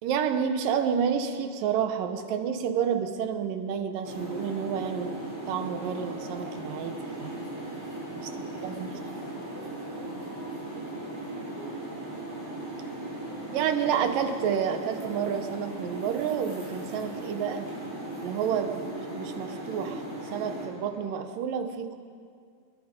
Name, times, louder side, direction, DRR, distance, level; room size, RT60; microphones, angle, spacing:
voice 1, 0.0-5.1 5.5-7.5 8.2-8.3 8.6-8.9 13.5-17.7 18.2-18.9 19.1-22.0, right 7 dB, 70° right, 7 dB, 2.5 m, -29 dB
sound 1, 4.0-20.7, right 1 dB, 5° right, 6.4 m, -37 dB
voice 2, 8.3-11.9 18.7-18.9, right 1 dB, 75° left, -6 dB, 9.9 m, -51 dB
26.5 x 21.5 x 5.3 m, 2.1 s
omnidirectional pair, 4.6 m